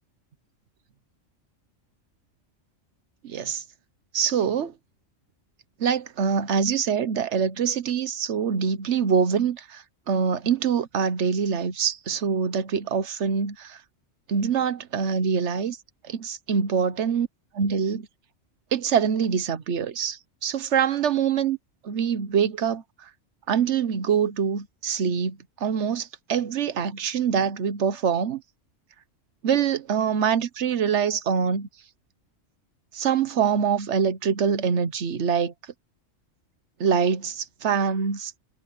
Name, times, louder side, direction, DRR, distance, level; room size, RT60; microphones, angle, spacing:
voice 1, 3.2-3.6 4.1-4.7 5.8-13.8 14.3-15.8 16.1-17.3 17.5-18.1 18.7-21.6 21.8-22.8 23.5-28.4 29.4-31.7 32.9-35.5 36.8-38.4, right 7 dB, 65° right, 1.3 m, -24 dB
omnidirectional pair, 1.3 m